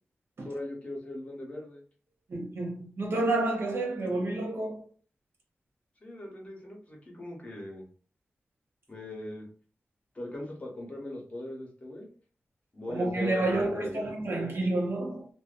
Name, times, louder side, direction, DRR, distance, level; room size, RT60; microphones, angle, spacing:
voice 1, 0.4-1.8 6.0-7.9 8.9-9.4 10.1-12.1 12.7-14.0, left 1 dB, 30° left, 0.9 m, -39 dB
voice 2, 2.3-4.9 12.9-15.3, right 2 dB, 60° right, 0.7 m, -29 dB
2.5 x 2.2 x 2.4 m
wide cardioid pair, 100°, 5 cm